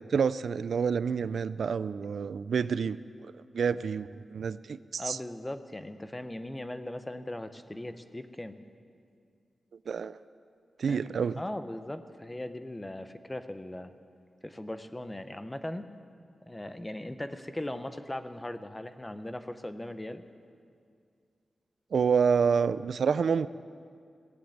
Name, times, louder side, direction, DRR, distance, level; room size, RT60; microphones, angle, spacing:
voice 1, 0.0-3.0 3.5-5.2 9.9-10.2 10.8-11.4 21.9-23.5, right 6 dB, 70° right, 15 dB, 0.3 m, -28 dB
voice 2, 5.0-8.6 10.9-13.9 14.4-15.9 16.5-20.3, left 1 dB, 10° left, 10 dB, 0.6 m, -39 dB
18.5 x 8.0 x 8.6 m, 2.3 s
wide cardioid pair, 175°, 0 cm